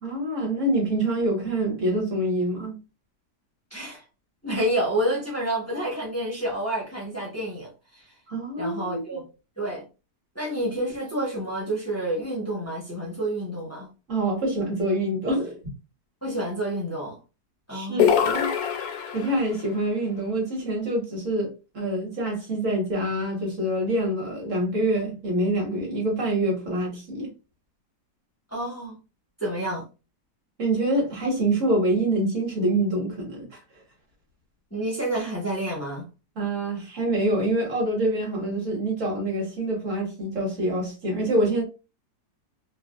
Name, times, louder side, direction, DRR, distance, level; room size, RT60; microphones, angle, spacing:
voice 1, 0.0-2.8 8.3-9.2 14.1-15.6 17.7-18.5 19.1-27.3 30.6-33.6 36.3-41.6, right 1 dB, 50° right, 1.5 m, -26 dB
voice 2, 3.7-4.0 4.4-8.0 8.6-9.3 9.6-9.8 10.3-13.9 16.2-17.2 17.7-18.1 28.5-29.0 29.4-29.8 34.7-36.1, right 1 dB, 15° left, 0.5 m, -29 dB
sound 1, 18.0-19.5, left 8 dB, 70° left, 1.0 m, -23 dB
3.2 x 2.3 x 2.3 m
omnidirectional pair, 1.8 m